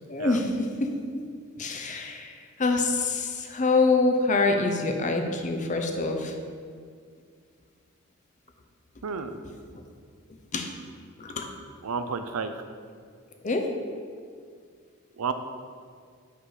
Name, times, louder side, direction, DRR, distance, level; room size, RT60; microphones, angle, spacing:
voice 1, 0.1-1.3 1.6-6.3 9.7-9.8 10.5-10.7 11.2-11.5 13.4-13.7, left 3 dB, 35° left, 4 dB, 0.7 m, -26 dB
voice 2, 9.0-9.4 11.8-12.5 15.2-15.3, right 5 dB, 90° right, 9 dB, 0.5 m, -31 dB
5.8 x 5.7 x 4.8 m, 2.1 s
head